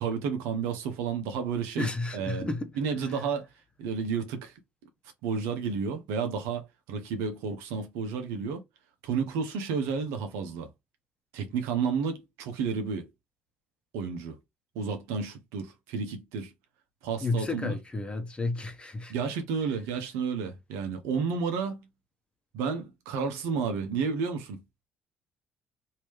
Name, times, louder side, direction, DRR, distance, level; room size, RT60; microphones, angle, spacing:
voice 1, 0.0-2.5 2.8-3.5 3.8-4.5 5.2-8.6 9.0-10.7 11.3-13.1 13.9-14.4 14.7-16.5 17.0-17.8 19.1-21.9 22.5-24.6, right 6 dB, 70° right, 0.8 m, -31 dB
voice 2, 1.8-2.7 17.2-19.1, left 3 dB, 20° left, 1.0 m, -31 dB
3.0 x 2.8 x 3.1 m
hypercardioid pair, 55°, 5 cm